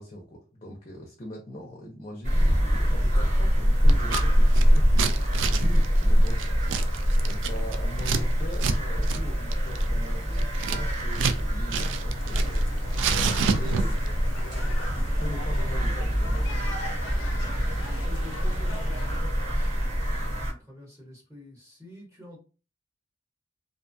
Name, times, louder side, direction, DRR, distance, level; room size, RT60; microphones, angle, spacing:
voice 1, 0.0-5.0 5.5-6.5 7.2-14.2 14.9-16.7, left 1 dB, 35° left, 0 dB, 0.5 m, -41 dB
sound 1, 2.2-20.5, equal, 40° right, 1.1 m, -24 dB
Scissors, 3.9-4.2 4.5-8.2 8.5-8.8 9.0-9.2 9.5-11.4 11.7-12.6 12.9-14.1, right 6 dB, 75° right, 0.3 m, -29 dB
sound 2, 12.2-19.2, left 2 dB, 90° left, 0.6 m, -40 dB
voice 2, 18.0-22.4, left 1 dB, 15° right, -4 dB, 1.1 m, -48 dB
2.5 x 2.3 x 2.6 m, 0.34 s
head